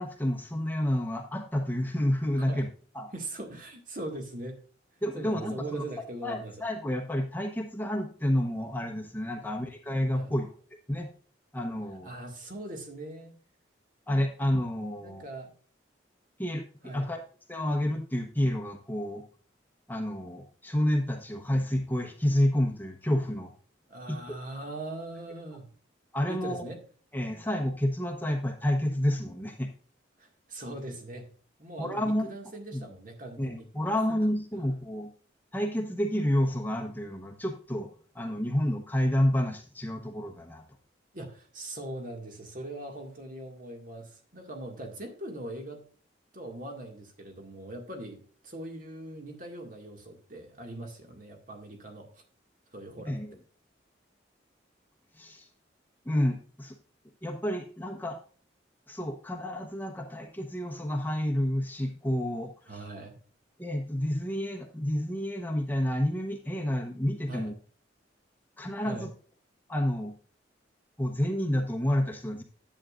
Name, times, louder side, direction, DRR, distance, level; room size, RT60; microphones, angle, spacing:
voice 1, 0.0-2.7 2.9-3.1 5.0-5.8 6.2-10.5 10.9-11.1 11.5-12.1 14.1-15.2 16.4-16.6 16.9-17.2 17.5-19.2 19.9-23.5 24.1-24.2 26.1-26.7 27.1-29.7 31.8-32.3 32.7-32.9 33.4-35.1 35.5-37.9 38.1-40.6 53.0-53.3 55.2-55.5 56.0-56.8 57.2-58.2 58.9-62.8 63.6-67.5 68.6-69.1 69.7-70.1 71.0-72.4, left 1 dB, 10° left, 3 dB, 1.0 m, -29 dB
voice 2, 2.4-2.7 3.1-4.6 5.1-6.5 9.3-9.4 10.2-10.3 12.0-13.3 15.0-15.5 16.8-17.1 23.9-25.7 26.3-26.8 30.2-31.3 31.6-33.7 41.1-45.8 46.3-48.2 48.4-52.1 52.7-53.2 62.7-63.2 67.3-67.5 68.8-69.1, right 1 dB, 45° right, 3 dB, 2.0 m, -41 dB
10.5 x 8.5 x 2.5 m, 0.42 s
head